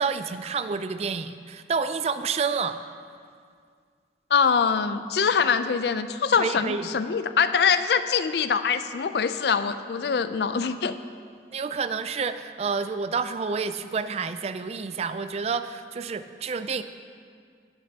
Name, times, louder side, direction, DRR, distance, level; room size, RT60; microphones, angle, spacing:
voice 1, 0.0-2.8 6.3-6.9 11.5-16.8, right 5 dB, 35° right, 11 dB, 0.3 m, -29 dB
voice 2, 4.3-11.0, left 6 dB, 65° left, 11 dB, 0.4 m, -23 dB
18.5 x 6.7 x 2.8 m, 2.1 s
head